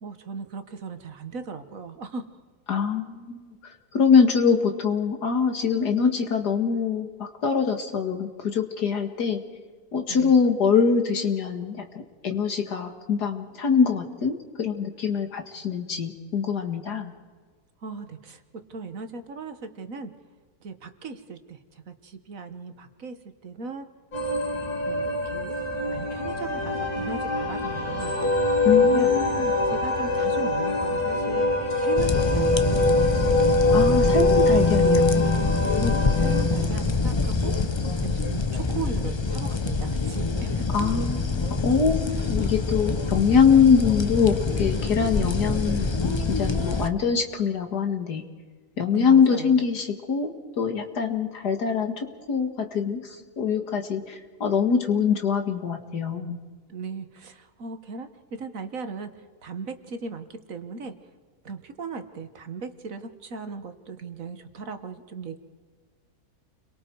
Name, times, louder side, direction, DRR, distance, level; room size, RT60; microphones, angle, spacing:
voice 1, 0.0-2.2 10.1-10.3 17.8-18.4 18.7-20.1 20.6-23.1 23.4-23.9 24.9-25.5 25.9-28.2 28.7-29.1 29.7-31.5 31.8-32.9 35.8-40.7 45.2-45.4 48.9-49.7 56.7-59.1 59.4-60.9 61.4-65.4, right 4 dB, 60° right, 8 dB, 1.7 m, -37 dB
voice 2, 2.7-9.4 9.9-17.1 28.6-29.5 33.7-35.4 40.7-48.2 48.8-53.0 53.4-56.4, left 6 dB, 85° left, 5 dB, 2.4 m, -24 dB
sound 1, 24.1-36.4, left 2 dB, 65° left, 4.8 m, -28 dB
sound 2, 28.2-35.4, left 1 dB, 10° left, 1.4 m, -23 dB
sound 3, 32.0-46.9, left 3 dB, 25° left, 0.6 m, -25 dB
29.5 x 23.0 x 4.7 m, 1.5 s
omnidirectional pair, 1.7 m